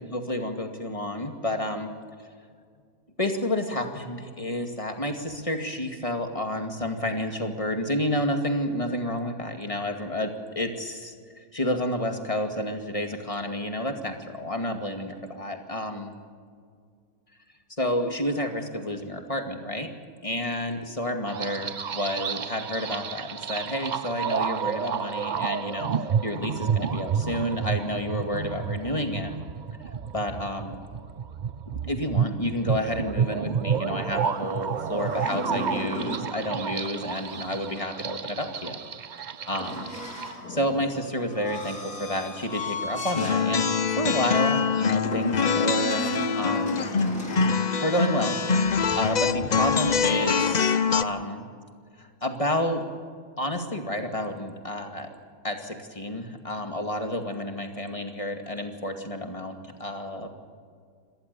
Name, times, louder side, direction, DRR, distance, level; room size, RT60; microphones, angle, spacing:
voice 1, 0.0-1.9 3.2-16.1 17.8-19.9 20.2-29.3 30.1-30.8 31.8-38.8 39.4-39.9 40.5-46.8 47.8-51.5 52.0-52.9 53.4-55.1 55.4-60.3, left 1 dB, 20° left, 4 dB, 2.3 m, -30 dB
sound 1, 21.3-40.3, right 7 dB, 60° right, 0.4 m, -30 dB
sound 2, 34.0-36.3 39.6-43.4 43.9-44.1 45.0-47.6 50.2-50.5, left 1 dB, 80° left, 4.3 m, -36 dB
sound 3, 43.2-51.0, left 5 dB, 50° left, 0.5 m, -24 dB
26.0 x 18.5 x 6.9 m, 2.1 s
omnidirectional pair, 1.7 m